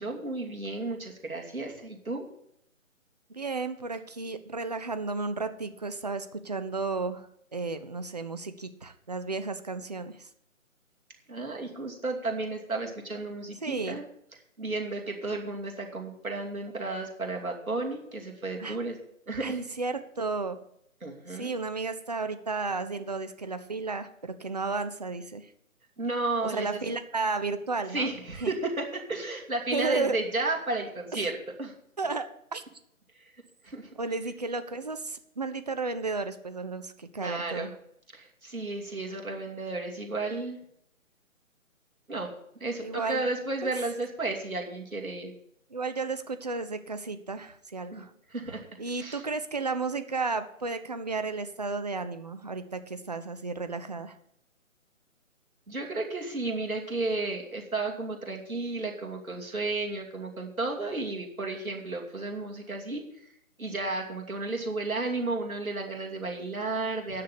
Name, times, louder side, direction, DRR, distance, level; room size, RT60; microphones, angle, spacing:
voice 1, 0.0-2.3 11.3-14.1 14.6-19.0 19.3-19.6 21.0-21.5 26.0-26.8 27.9-31.7 33.6-33.9 37.2-37.7 38.1-40.6 42.1-42.3 42.6-45.3 47.9-48.0 48.3-48.7 49.0-49.2 55.7-63.2 63.6-67.2, right 2 dB, 85° right, 1 dB, 2.7 m, -33 dB
voice 2, 3.3-10.3 13.6-14.0 18.6-18.8 19.4-20.6 21.3-25.5 26.4-28.1 28.4-28.5 29.7-30.2 31.1-31.3 32.0-32.3 32.5-32.6 34.0-37.7 42.8-43.2 43.6-43.7 45.7-48.1 48.8-54.2, right 3 dB, 30° right, 9 dB, 0.6 m, -33 dB
9.5 x 6.8 x 8.3 m, 0.75 s
figure-of-eight pair, 150°, 41 cm